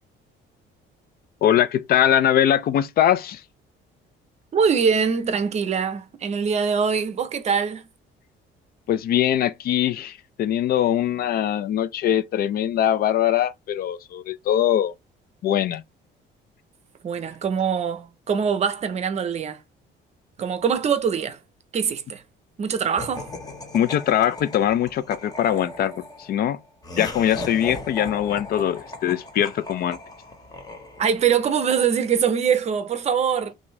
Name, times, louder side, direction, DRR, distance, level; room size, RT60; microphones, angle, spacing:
voice 1, 1.4-3.4 8.9-14.9 15.4-15.8 23.7-26.6 27.0-30.0, left 10 dB, 50° left, 0.4 m, -22 dB
voice 2, 4.5-7.9 17.0-19.6 20.4-21.4 21.7-22.2 22.6-23.3 31.0-33.5, right 7 dB, 35° right, 0.6 m, -23 dB
Laughter, 23.0-31.3, left 2 dB, 20° left, 0.9 m, -37 dB
5.9 x 2.7 x 3.1 m
cardioid pair, 165°, 20 cm